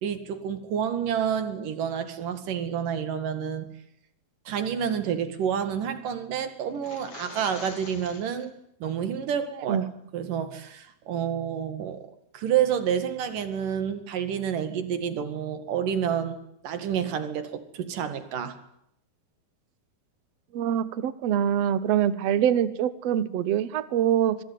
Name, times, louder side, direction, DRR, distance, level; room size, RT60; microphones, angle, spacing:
voice 1, 0.0-3.7 4.5-8.5 8.8-9.8 10.1-12.1 12.3-16.4 16.6-18.6, right 8 dB, 60° right, 10 dB, 3.4 m, -29 dB
sound 1, 6.7-8.5, left 5 dB, 50° left, 4.4 m, -44 dB
voice 2, 20.5-24.4, right 10 dB, 75° right, 15 dB, 1.5 m, -24 dB
26.5 x 20.5 x 9.5 m, 0.76 s
omnidirectional pair, 4.7 m